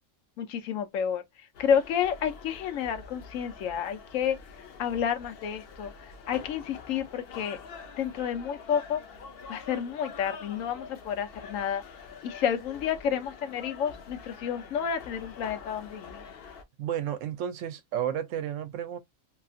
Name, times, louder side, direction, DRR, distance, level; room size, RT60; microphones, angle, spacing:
voice 1, 0.4-1.2 1.6-4.4 4.8-5.9 6.3-7.6 8.0-9.0 9.5-11.8 12.2-16.3, left 8 dB, 85° left, 1.0 m, -30 dB
sound 1, 1.5-16.6, left 5 dB, 60° left, 0.7 m, -46 dB
voice 2, 16.8-19.0, right 10 dB, 75° right, 0.9 m, -32 dB
2.9 x 2.4 x 2.5 m
omnidirectional pair, 1.3 m